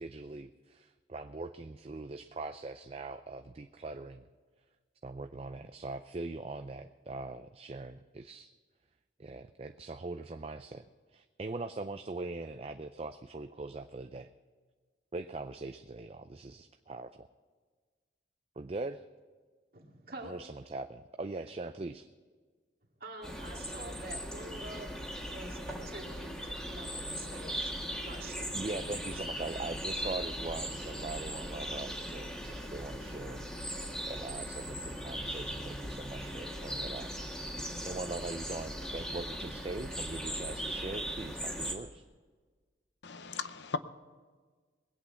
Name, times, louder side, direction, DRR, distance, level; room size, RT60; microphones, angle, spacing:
voice 1, 0.0-4.3 5.0-8.5 9.2-14.3 15.1-17.3 18.6-19.0 20.2-22.1 28.5-33.5 34.1-37.1 37.8-42.0, right 3 dB, 35° right, 8 dB, 0.4 m, -41 dB
voice 2, 19.7-20.3 23.0-24.9 25.3-29.1, right 2 dB, 55° right, 0 dB, 2.3 m, -47 dB
sound 1, 23.2-41.7, equal, 5° left, 1.6 m, -39 dB
voice 3, 43.0-43.8, left 4 dB, 75° left, 12 dB, 0.7 m, -37 dB
20.5 x 8.6 x 5.6 m, 1.5 s
head